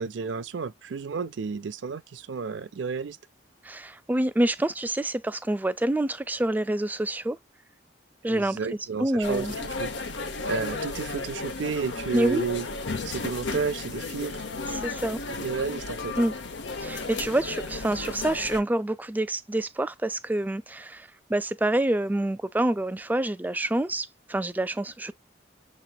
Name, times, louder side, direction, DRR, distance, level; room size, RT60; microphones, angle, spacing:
voice 1, 0.0-3.2 8.2-9.9 10.5-12.7 13.0-14.4 15.4-16.1, right 5 dB, 85° right, 0.5 m, -32 dB
voice 2, 3.6-7.4 8.2-8.6 9.0-9.5 12.1-12.5 14.7-15.2 16.2-16.3 16.8-25.1, right 1 dB, 10° right, 0.3 m, -27 dB
sound 1, 9.2-18.6, left 3 dB, 75° left, 0.8 m, -34 dB
6.7 x 3.0 x 2.3 m
head